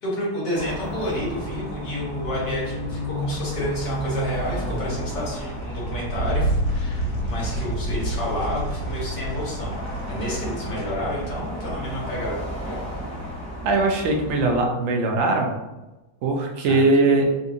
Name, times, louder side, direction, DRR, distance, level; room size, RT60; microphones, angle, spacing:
voice 1, 0.0-12.7 16.6-17.2, equal, 60° left, -6 dB, 1.7 m, -30 dB
sound 1, 0.5-14.6, equal, 10° right, 1.0 m, -33 dB
sound 2, 3.2-13.6, right 1 dB, 85° left, 1.5 m, -31 dB
voice 2, 13.6-15.5 16.2-17.2, right 2 dB, 75° right, 1 dB, 0.7 m, -20 dB
4.2 x 2.6 x 2.5 m, 1.1 s
omnidirectional pair, 2.0 m